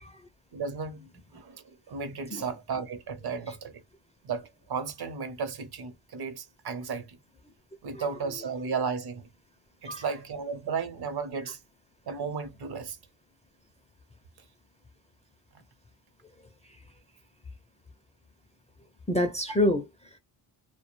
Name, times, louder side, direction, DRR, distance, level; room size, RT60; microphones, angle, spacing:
voice 1, 0.5-3.8 4.2-7.2 7.8-9.3 9.8-11.6 12.1-13.0, right 5 dB, 55° right, 0.7 m, -34 dB
voice 2, 19.1-20.2, left 1 dB, 15° left, 0.4 m, -27 dB
2.2 x 2.1 x 3.0 m
cardioid pair, 100°, 46 cm